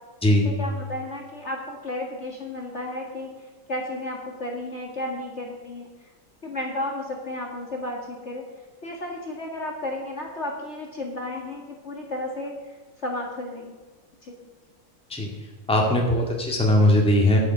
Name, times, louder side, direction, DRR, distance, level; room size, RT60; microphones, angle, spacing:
voice 1, 0.4-3.3 3.7-5.9 6.4-8.4 8.8-12.7 13.0-13.7 14.2-14.5, left 1 dB, 40° left, 0 dB, 2.0 m, -33 dB
voice 2, 15.7-17.4, left 1 dB, 5° left, 0 dB, 1.9 m, -19 dB
10.0 x 9.4 x 7.0 m, 1.3 s
omnidirectional pair, 2.0 m